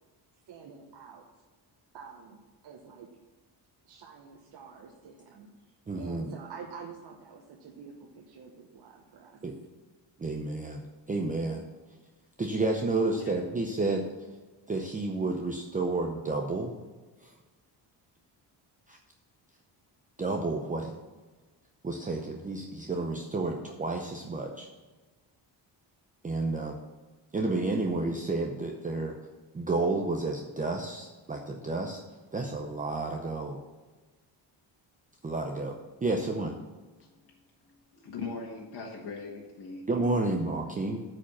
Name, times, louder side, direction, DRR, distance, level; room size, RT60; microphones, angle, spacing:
voice 1, 0.5-1.4 1.9-3.1 3.8-5.5 5.9-9.4, right 5 dB, 60° right, 0 dB, 1.1 m, -48 dB
voice 2, 5.9-6.3 9.4-9.5 10.2-11.6 12.4-14.0 14.7-16.7 17.2-17.3 18.9-19.0 20.2-20.9 21.8-24.7 26.2-26.8 27.3-29.2 29.5-32.0 32.3-33.6 35.2-36.6 39.9-41.0, right 2 dB, 20° right, 2 dB, 0.7 m, -31 dB
voice 3, 38.0-40.2, left 4 dB, 55° left, -3 dB, 1.7 m, -40 dB
8.7 x 4.9 x 7.3 m, 1.3 s
cardioid pair, 130°, 44 cm